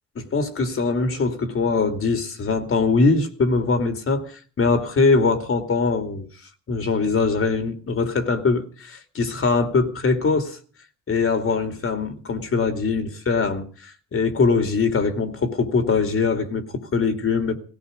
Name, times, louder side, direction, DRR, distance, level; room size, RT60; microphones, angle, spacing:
voice 1, 0.2-6.3 6.7-10.6 11.1-17.6, left 4 dB, 45° left, 2.6 m, -22 dB
17.0 x 16.5 x 5.1 m
cardioid pair, 90°, 30 cm